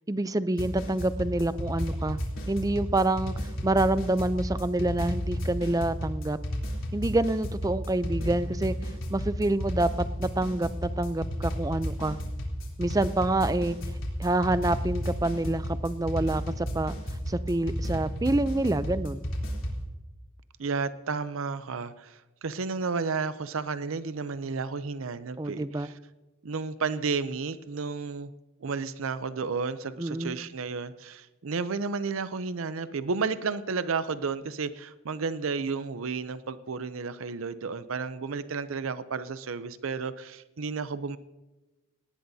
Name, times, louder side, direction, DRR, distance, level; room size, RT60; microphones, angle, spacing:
voice 1, 0.1-2.2 2.5-6.4 6.9-8.8 9.1-12.2 12.8-13.8 14.2-16.9 17.3-19.2 25.4-25.9 30.0-30.4, right 2 dB, 15° right, 13 dB, 0.5 m, -27 dB
sound 1, 0.6-19.8, equal, 70° left, 3.4 m, -32 dB
voice 2, 20.6-26.0 26.4-28.3 28.6-41.2, right 4 dB, 75° right, 13 dB, 0.6 m, -32 dB
18.5 x 18.0 x 2.7 m, 1.1 s
head